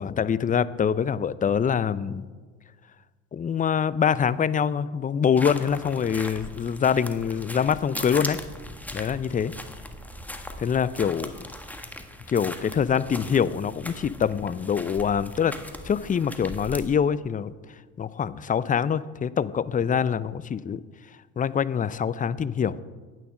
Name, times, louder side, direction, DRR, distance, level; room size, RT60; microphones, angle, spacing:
voice 1, 0.0-2.3 3.3-8.4 8.9-9.5 10.6-11.5 12.3-15.5 15.8-17.5 18.0-20.8 21.4-22.8, left 7 dB, 20° left, 16 dB, 0.5 m, -25 dB
sound 1, 5.4-17.0, left 1 dB, 5° left, 1.4 m, -39 dB
10.5 x 9.3 x 6.4 m, 1.4 s
hypercardioid pair, 60°, 37 cm